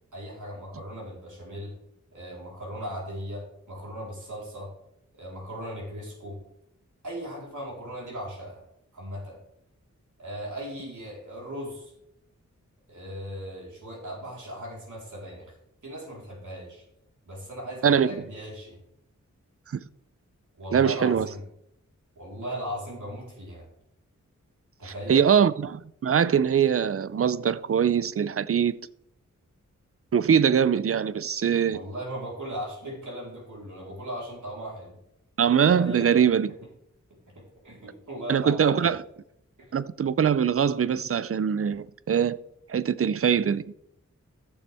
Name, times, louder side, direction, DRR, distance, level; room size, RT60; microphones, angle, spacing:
voice 1, 0.1-1.7 2.1-4.7 5.1-6.4 7.0-8.6 8.9-9.4 10.2-11.9 12.9-15.5 15.8-16.8 17.3-18.8 20.6-21.4 22.2-23.7 24.8-25.3 31.7-35.0 35.7-36.1 37.4-39.0 39.6-39.7, equal, 75° right, 4.1 m, -38 dB
voice 2, 17.8-18.1 20.7-21.3 24.9-28.8 30.1-31.8 35.4-36.5 38.3-39.0 39.7-42.4 42.7-43.8, right 7 dB, 45° right, 0.5 m, -22 dB
14.5 x 6.8 x 3.5 m
wide cardioid pair, 65°, 31 cm